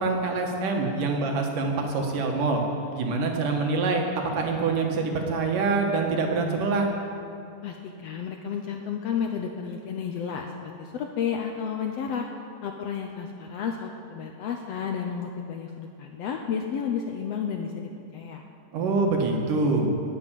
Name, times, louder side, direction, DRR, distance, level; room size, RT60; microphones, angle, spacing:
voice 1, 0.0-2.6 2.9-4.0 4.3-6.9 18.7-19.9, right 3 dB, 80° right, 1 dB, 3.2 m, -25 dB
voice 2, 7.6-12.3 12.6-18.4, left 7 dB, 75° left, 3 dB, 1.5 m, -32 dB
19.0 x 7.9 x 7.5 m, 2.5 s
omnidirectional pair, 3.7 m